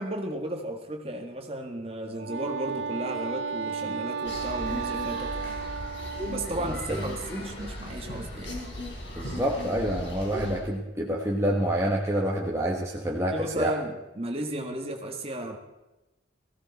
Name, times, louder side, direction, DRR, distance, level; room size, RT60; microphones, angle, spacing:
voice 1, 0.0-5.3 6.3-8.6 13.3-15.6, right 1 dB, 30° right, 3 dB, 1.8 m, -34 dB
Wind instrument woodwind instrument, 2.1-6.8, right 6 dB, 85° right, 0.7 m, -34 dB
sound 1, 4.2-10.6, left 1 dB, 80° left, 4.5 m, -37 dB
voice 2, 9.2-13.7, right 1 dB, 15° right, -2 dB, 1.3 m, -27 dB
18.5 x 16.0 x 4.2 m, 1.0 s
head